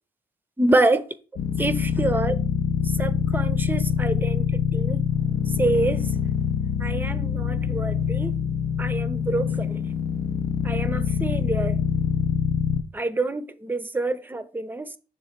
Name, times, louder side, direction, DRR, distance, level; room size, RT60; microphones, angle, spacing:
voice 1, 0.6-1.0 1.6-2.4 2.8-5.1 5.6-6.1 6.8-8.4 8.8-9.8 10.6-11.8 12.9-15.0, right 2 dB, 10° right, 0.6 m, -26 dB
sound 1, 1.4-12.8, left 7 dB, 70° left, 0.5 m, -25 dB
6.3 x 3.9 x 4.4 m
cardioid pair, 60°, 15 cm